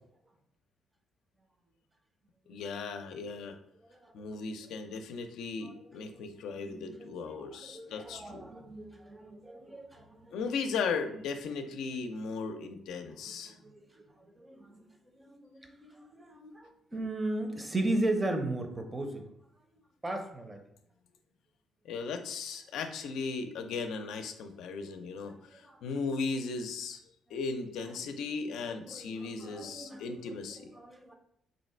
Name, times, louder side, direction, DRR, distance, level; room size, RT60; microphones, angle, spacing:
voice 1, 2.5-3.6 4.1-8.5 10.3-13.6 21.8-27.0 27.3-30.7, left 4 dB, 85° left, 6 dB, 0.4 m, -37 dB
voice 2, 3.9-4.3 5.6-5.7 6.1-10.4 13.3-14.8 15.3-19.3 20.0-20.6 25.2-25.8 28.0-28.1 28.4-30.2 30.8-31.1, right 2 dB, 20° right, 5 dB, 0.6 m, -37 dB
3.2 x 2.7 x 4.3 m, 0.73 s
cardioid pair, 90°, 0 cm